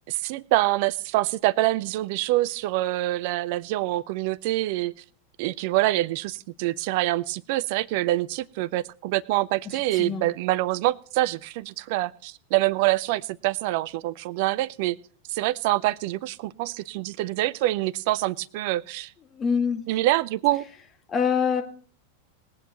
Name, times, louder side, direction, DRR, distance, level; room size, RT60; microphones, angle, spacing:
voice 1, 0.1-4.9 5.4-15.0 15.3-19.1 19.9-20.6, right 17 dB, 50° right, 20 dB, 0.5 m, -25 dB
voice 2, 9.7-10.2 19.3-19.8 21.1-21.6, left 6 dB, 20° left, 4 dB, 2.0 m, -25 dB
21.5 x 9.0 x 3.0 m, 0.43 s
figure-of-eight pair, 90°, 0 cm